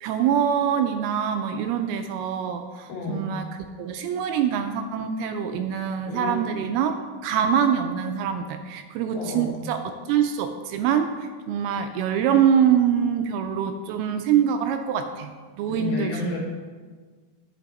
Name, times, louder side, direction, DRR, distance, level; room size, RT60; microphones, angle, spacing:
voice 1, 0.0-7.0 7.2-15.3 15.6-16.4, right 8 dB, 80° right, 7 dB, 2.4 m, -24 dB
voice 2, 2.9-3.2 6.1-6.4 9.1-9.6 15.7-16.4, left 3 dB, 65° left, -2 dB, 3.5 m, -31 dB
10.5 x 9.1 x 4.1 m, 1.5 s
omnidirectional pair, 4.7 m